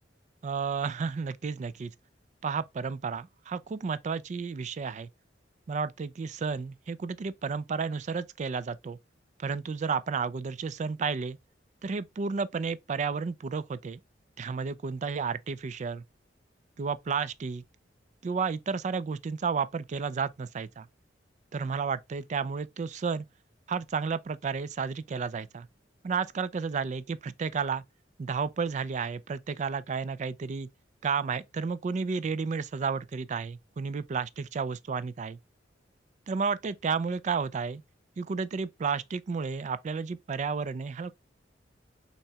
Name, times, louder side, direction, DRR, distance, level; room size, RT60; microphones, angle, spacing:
voice 1, 0.4-1.9 2.4-5.1 5.7-9.0 9.4-11.4 11.8-14.0 14.4-16.0 16.8-17.6 18.2-20.9 21.5-23.3 23.7-25.7 26.0-27.8 28.2-30.7 31.0-35.4 36.3-37.8 38.2-41.1, right 5 dB, 40° right, 0.3 m, -32 dB
5.5 x 3.0 x 2.2 m
head